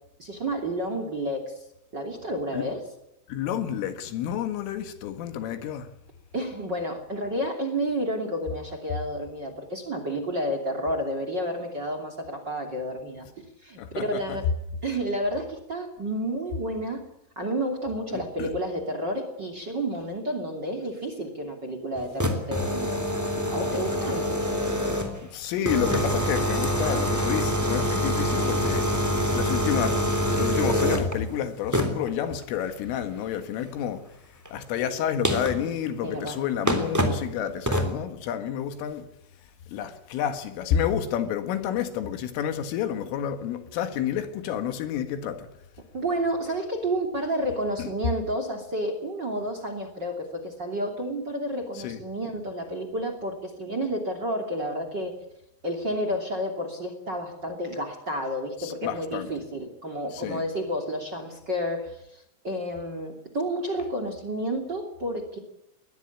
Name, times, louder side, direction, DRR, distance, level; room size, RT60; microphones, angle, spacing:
voice 1, 0.2-1.6 1.9-2.8 6.3-13.3 13.6-14.4 14.8-17.0 17.4-23.0 23.5-24.3 36.0-36.4 45.9-55.1 55.6-62.0 62.4-65.4, right 1 dB, 30° right, 2.6 m, -30 dB
voice 2, 3.3-5.9 13.8-14.4 18.1-18.5 25.2-28.9 29.4-34.2 34.5-39.1 39.7-45.5 47.8-47.9 51.8-52.0 58.6-59.3 60.1-60.4, left 9 dB, 80° left, 4.2 m, -30 dB
sound 1, 22.0-25.2 25.7-31.1 31.7-32.1 34.4-34.5 35.2-35.6 36.3-36.4 36.7-37.2 37.7-37.9, equal, 5° right, 2.0 m, -25 dB
21.5 x 20.0 x 8.6 m
omnidirectional pair, 5.7 m